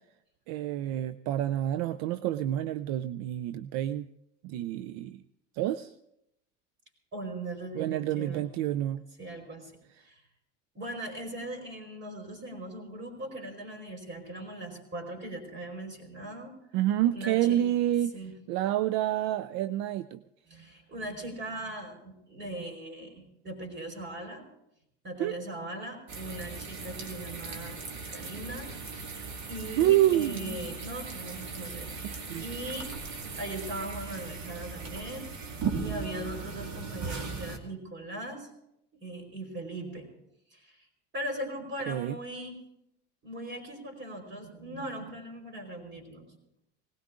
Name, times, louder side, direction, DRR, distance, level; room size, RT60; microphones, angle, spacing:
voice 1, 0.5-4.1 4.4-5.2 5.5-5.9 7.8-9.0 16.7-18.1 18.5-20.2 25.2-25.3 29.8-30.3 32.3-32.4 35.7-36.4 41.9-42.2, right 13 dB, 70° right, 13 dB, 0.6 m, -28 dB
voice 2, 7.1-8.5 9.2-9.7 10.0-10.2 10.7-16.5 17.0-17.7 18.1-18.3 20.5-24.4 25.0-27.8 28.1-28.7 29.5-31.9 32.2-32.9 33.4-35.3 35.7-38.5 39.0-40.1 40.5-40.8 41.1-42.6 43.2-46.3, right 1 dB, 30° right, 4 dB, 4.9 m, -39 dB
sound 1, 26.1-37.6, right 4 dB, 50° right, 2.4 m, -38 dB
19.0 x 17.0 x 3.7 m, 0.82 s
supercardioid pair, 95°, 36 cm